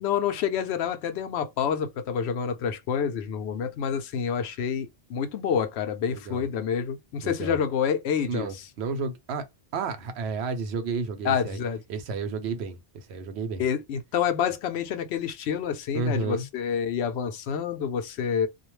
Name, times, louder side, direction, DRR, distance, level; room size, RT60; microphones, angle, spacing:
voice 1, 0.0-8.5 11.2-11.8 13.6-18.5, left 7 dB, 90° left, 0.8 m, -28 dB
voice 2, 6.1-6.5 7.2-7.6 8.3-9.4 9.7-11.6 11.9-13.6 15.9-16.5, right 4 dB, 85° right, 0.9 m, -31 dB
2.4 x 2.2 x 3.0 m
omnidirectional pair, 1.1 m